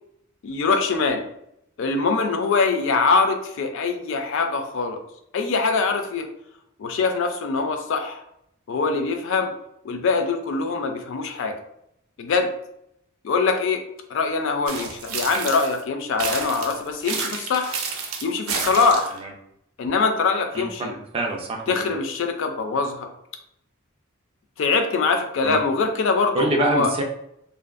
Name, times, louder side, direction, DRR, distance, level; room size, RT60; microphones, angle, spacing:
voice 1, 0.4-1.2 1.8-5.0 5.3-6.3 6.8-8.2 8.7-9.5 9.8-11.5 12.2-12.5 13.2-13.8 14.1-17.8 18.2-19.2 19.8-20.9 21.7-23.1 24.6-26.9, left 4 dB, 65° left, 6 dB, 0.4 m, -23 dB
sound 1, 14.7-15.8 16.2-19.2, right 5 dB, 85° right, 0.5 m, -30 dB
voice 2, 20.5-22.0 25.4-25.6 26.3-27.0, right 2 dB, 25° right, 2 dB, 0.3 m, -26 dB
2.5 x 2.2 x 2.4 m, 0.77 s
head